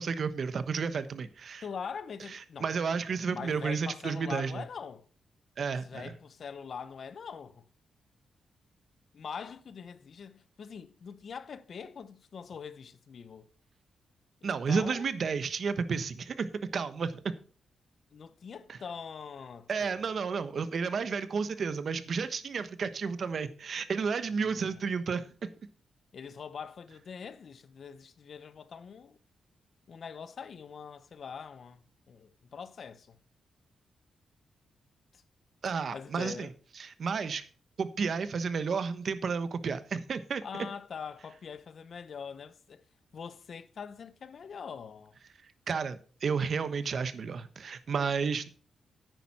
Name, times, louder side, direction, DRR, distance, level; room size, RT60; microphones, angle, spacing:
voice 1, 0.0-1.6 2.6-4.6 5.6-6.1 14.4-17.3 18.7-18.8 19.7-25.5 35.6-36.5 36.8-37.5 37.8-40.4 45.7-48.5, right 5 dB, 50° right, 1.1 m, -32 dB
voice 2, 1.6-2.7 3.3-5.1 5.8-7.7 9.1-13.5 14.4-15.1 18.1-20.1 24.3-25.0 26.1-29.2 29.9-33.2 35.1-35.2 35.7-36.5 40.4-42.8 43.1-45.2, left 6 dB, 55° left, 0.8 m, -43 dB
10.0 x 9.2 x 4.2 m
wide cardioid pair, 130°, 0 cm